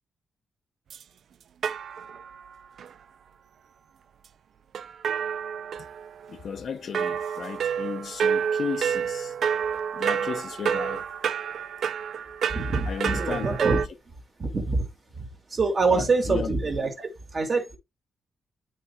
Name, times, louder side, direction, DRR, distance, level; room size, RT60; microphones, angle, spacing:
sound 1, 0.9-1.0 1.6-2.4 2.8-2.9 4.7-6.3 6.9-13.9, right 7 dB, 60° right, 0.3 m, -29 dB
voice 1, 6.3-9.4 9.9-11.1 12.8-13.9 15.9-16.5, left 6 dB, 50° left, 0.7 m, -34 dB
voice 2, 12.5-13.8 14.4-14.8 15.2-17.8, right 3 dB, 30° right, 1.8 m, -25 dB
11.0 x 4.1 x 2.2 m
wide cardioid pair, 175°, 0 cm